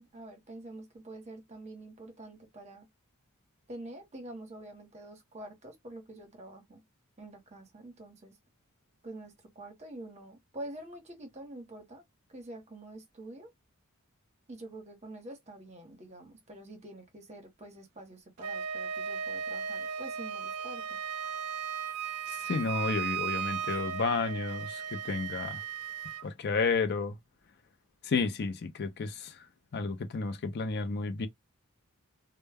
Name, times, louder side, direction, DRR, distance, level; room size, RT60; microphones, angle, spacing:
voice 1, 0.0-2.9 3.7-6.8 7.2-8.3 9.0-12.0 12.3-13.5 14.5-21.0, right 1 dB, 30° right, 0.8 m, -46 dB
Wind instrument woodwind instrument, 18.4-26.3, right 7 dB, 85° right, 0.4 m, -36 dB
voice 2, 22.3-25.6 26.2-27.2 28.0-31.3, left 4 dB, 50° left, 0.4 m, -32 dB
2.2 x 2.0 x 3.3 m
head